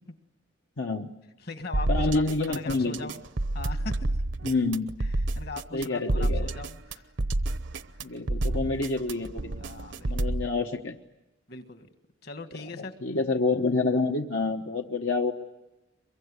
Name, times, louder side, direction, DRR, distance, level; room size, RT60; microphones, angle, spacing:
voice 1, 0.8-1.1 1.9-3.1 4.4-5.0 5.7-6.5 8.0-9.5 10.1-11.0 12.8-15.3, left 3 dB, 75° left, 2 dB, 1.1 m, -28 dB
voice 2, 1.4-3.2 3.5-4.1 5.3-7.0 9.6-10.2 11.5-11.9 12.2-12.9, left 3 dB, 55° left, 8 dB, 1.7 m, -40 dB
sound 1, 1.7-10.5, right 2 dB, 65° right, 0.8 m, -29 dB
23.0 x 23.0 x 9.7 m, 0.98 s
head